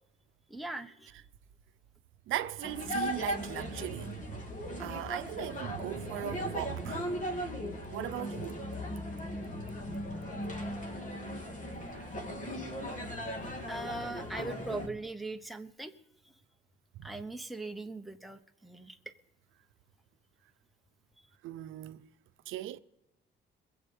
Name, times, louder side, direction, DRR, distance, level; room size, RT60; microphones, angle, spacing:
voice 1, 0.5-1.1 13.7-15.9 17.0-19.0, right 2 dB, ahead, 1.1 m, -40 dB
voice 2, 2.3-4.5 4.8-7.2 7.9-8.6 11.9-12.0 17.0-17.1 21.4-22.1 22.5-22.8, right 13 dB, 85° right, 0.7 m, -38 dB
sound 1, 2.6-14.9, equal, 40° left, 3.4 m, -38 dB
22.0 x 7.9 x 5.4 m
cardioid pair, 90°, 20 cm